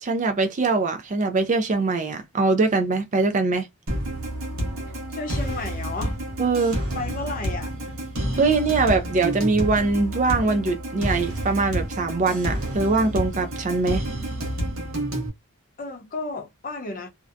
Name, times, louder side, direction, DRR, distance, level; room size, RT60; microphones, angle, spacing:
voice 1, 0.0-3.7 6.4-6.8 8.4-14.0, right 3 dB, 35° right, 0.4 m, -22 dB
sound 1, 3.9-15.3, right 1 dB, 65° right, 0.9 m, -29 dB
voice 2, 5.1-6.2 6.9-7.7 15.8-17.1, left 3 dB, 40° left, 0.7 m, -32 dB
2.6 x 2.1 x 2.4 m
head